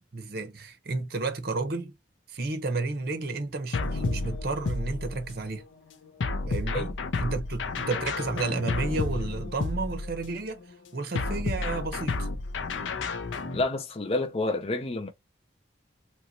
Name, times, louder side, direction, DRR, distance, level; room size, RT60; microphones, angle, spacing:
voice 1, 0.0-2.0 2.3-5.6 6.5-6.9 7.2-10.7 10.9-12.3, right 3 dB, 55° right, 0.8 m, -32 dB
sound 1, 3.7-5.5 6.2-10.4 11.2-13.6, left 3 dB, 80° left, 0.5 m, -31 dB
voice 2, 13.5-15.1, left 2 dB, 30° left, 0.4 m, -29 dB
3.0 x 2.8 x 2.7 m
head